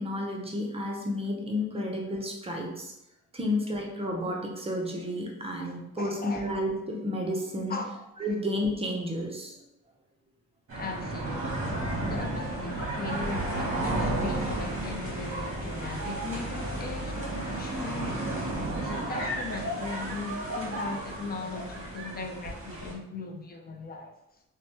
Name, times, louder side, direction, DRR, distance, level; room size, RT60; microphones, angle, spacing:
voice 1, 0.0-2.9 3.3-7.8 8.2-9.6, left 1 dB, 20° right, 0.5 m, -31 dB
voice 2, 6.0-6.5 7.7-7.9 10.8-11.7 12.1-18.3 18.7-24.1, left 3 dB, 30° left, 0.4 m, -38 dB
sound 1, 10.7-22.9, right 1 dB, 45° right, 0.9 m, -33 dB
3.1 x 2.1 x 2.7 m
cardioid pair, 110°, 30 cm